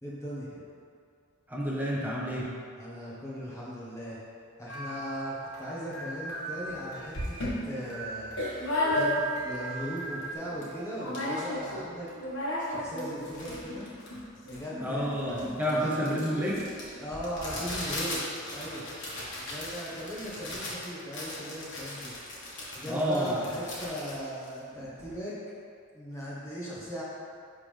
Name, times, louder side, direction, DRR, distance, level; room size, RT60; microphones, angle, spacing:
voice 1, 0.0-0.6 2.8-4.2 4.6-7.4 7.6-8.4 8.9-12.1 12.4-13.9 14.4-15.9 17.0-18.2 18.5-18.9 19.4-22.1 22.8-25.4 25.9-27.0, equal, 15° left, -7 dB, 1.3 m, -38 dB
voice 2, 1.5-2.5 14.8-16.6 22.9-23.3, equal, 10° right, -5 dB, 0.9 m, -29 dB
sound 1, 4.7-10.3, right 3 dB, 70° left, 1.4 m, -39 dB
sound 2, 6.7-6.8 7.1-9.5 9.9-10.0 10.2-10.7 11.0-11.8 12.1-25.1, left 1 dB, 55° left, 1.6 m, -35 dB
11.0 x 3.7 x 3.4 m, 2.3 s
head